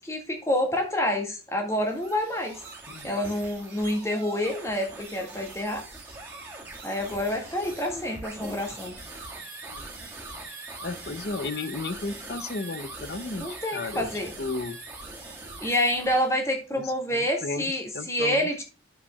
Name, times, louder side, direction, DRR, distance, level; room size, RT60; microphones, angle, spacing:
voice 1, 0.0-2.6 3.0-5.8 6.8-8.9 13.3-14.3 15.6-18.6, left 1 dB, 15° left, 1.8 m, -28 dB
sound 1, 1.7-16.3, right 2 dB, 10° right, 2.5 m, -42 dB
voice 2, 10.8-14.1 14.4-14.8 16.8-18.5, left 3 dB, 60° left, 0.7 m, -34 dB
9.3 x 7.2 x 2.3 m
head